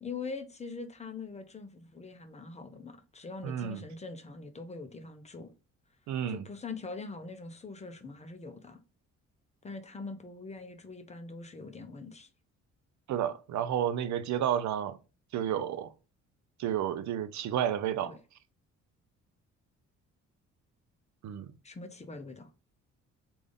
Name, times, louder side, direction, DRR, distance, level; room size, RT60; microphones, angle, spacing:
voice 1, 0.0-5.5 6.3-8.8 9.6-12.3 18.0-18.2 21.6-22.5, left 4 dB, 20° left, 0.6 m, -43 dB
voice 2, 3.4-3.8 6.1-6.4 13.1-15.0 15.3-15.9 16.6-18.2 21.2-21.5, right 10 dB, 70° right, 0.5 m, -31 dB
3.4 x 2.5 x 3.7 m
cardioid pair, 90°, 30 cm